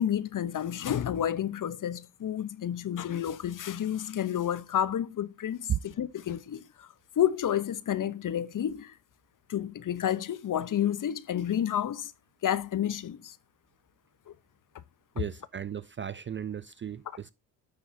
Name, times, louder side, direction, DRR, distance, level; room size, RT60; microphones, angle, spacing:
voice 1, 0.0-9.0 9.5-12.1 12.4-13.4 14.3-14.4, left 10 dB, 40° left, 0.9 m, -30 dB
voice 2, 15.1-17.3, right 9 dB, 25° right, 0.4 m, -35 dB
9.7 x 6.8 x 2.7 m
supercardioid pair, 70°, 49 cm